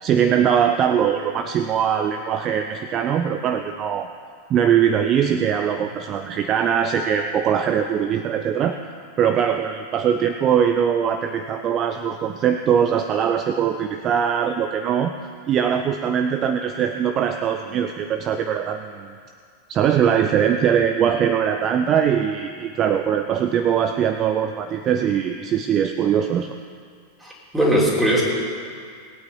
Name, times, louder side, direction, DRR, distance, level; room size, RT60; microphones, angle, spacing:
voice 1, 0.0-4.1 4.5-8.8 9.2-15.1 15.5-19.1 19.7-26.6, right 8 dB, 30° right, 7 dB, 0.6 m, -21 dB
voice 2, 27.2-28.2, equal, 5° right, -4 dB, 3.6 m, -19 dB
19.5 x 9.0 x 5.6 m, 2.1 s
figure-of-eight pair, 90°, 0 cm